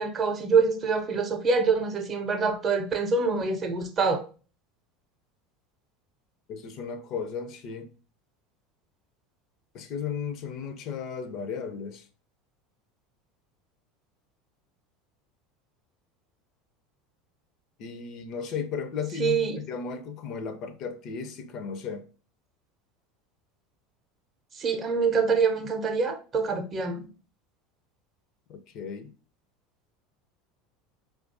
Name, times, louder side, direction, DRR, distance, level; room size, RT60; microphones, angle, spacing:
voice 1, 0.0-4.2 19.2-19.6 24.6-27.0, right 5 dB, 35° right, 0.6 m, -25 dB
voice 2, 6.5-7.9 9.7-12.1 17.8-22.1 28.5-29.1, left 6 dB, 50° left, 0.4 m, -35 dB
4.5 x 2.3 x 2.6 m
figure-of-eight pair, 75°, 0 cm